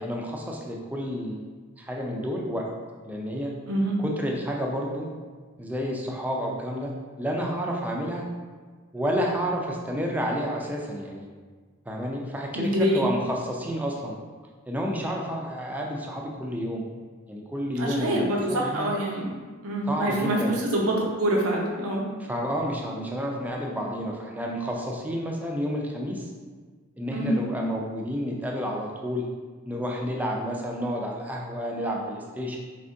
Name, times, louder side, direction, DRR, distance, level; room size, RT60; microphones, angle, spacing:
voice 1, 0.0-2.7 3.0-3.5 4.0-5.1 5.6-6.9 7.2-8.3 8.9-11.3 11.9-14.2 14.7-16.8 17.3-18.9 19.9-20.6 22.3-26.3 27.0-29.3 29.6-32.6, equal, 5° right, -1 dB, 0.4 m, -30 dB
voice 2, 3.7-4.0 12.5-13.3 17.8-19.3 19.6-22.1 27.1-27.4, right 1 dB, 80° right, -2 dB, 0.7 m, -25 dB
3.5 x 3.4 x 2.6 m, 1.5 s
head